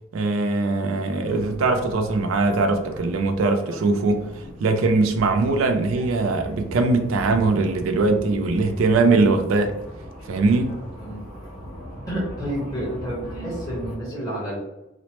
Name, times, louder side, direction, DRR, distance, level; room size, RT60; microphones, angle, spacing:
voice 1, 0.1-9.7 10.3-10.8, right 3 dB, 75° right, 6 dB, 0.3 m, -21 dB
sound 1, 1.3-14.0, equal, 75° left, 1.2 m, -39 dB
voice 2, 10.7-11.2 12.1-14.6, right 1 dB, 15° left, -6 dB, 1.1 m, -30 dB
2.9 x 2.0 x 2.9 m, 0.92 s
head